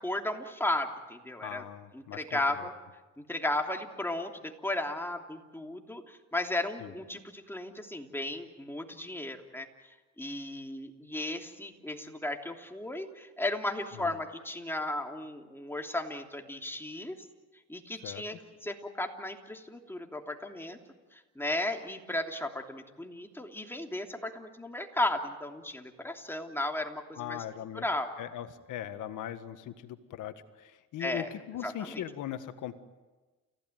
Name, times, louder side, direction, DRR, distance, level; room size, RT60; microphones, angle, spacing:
voice 1, 0.0-1.6 1.9-2.7 3.2-9.7 10.2-17.2 17.7-20.8 21.1-27.4 27.7-28.1 31.0-31.3 31.6-32.0, left 1 dB, 10° left, 3 dB, 3.1 m, -35 dB
voice 2, 1.4-2.7 6.8-6.9 13.9-14.2 18.0-18.4 27.2-27.9 28.2-32.8, left 11 dB, 85° left, 10 dB, 1.7 m, -40 dB
30.0 x 16.5 x 9.3 m, 1.2 s
cardioid pair, 90°, 30 cm